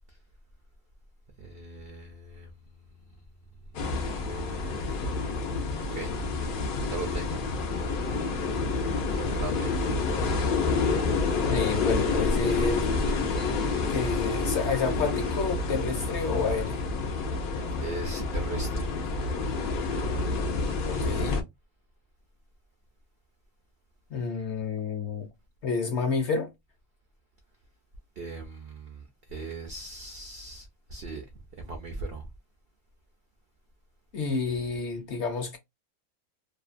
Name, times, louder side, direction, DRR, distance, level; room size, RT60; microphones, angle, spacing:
voice 1, 1.4-2.5 3.1-3.2 3.8-4.8 5.9-6.5 6.9-7.4 8.9-10.3 17.8-19.2 28.2-31.3 31.5-32.3, right 3 dB, 85° right, 0.5 m, -39 dB
sound 1, 3.7-21.4, left 3 dB, 90° left, 0.4 m, -28 dB
voice 2, 11.4-12.9 13.9-16.8 20.9-21.4 24.1-25.3 25.6-26.5 34.1-35.6, left 4 dB, 60° left, 0.8 m, -29 dB
2.7 x 2.1 x 2.4 m
omnidirectional pair, 1.6 m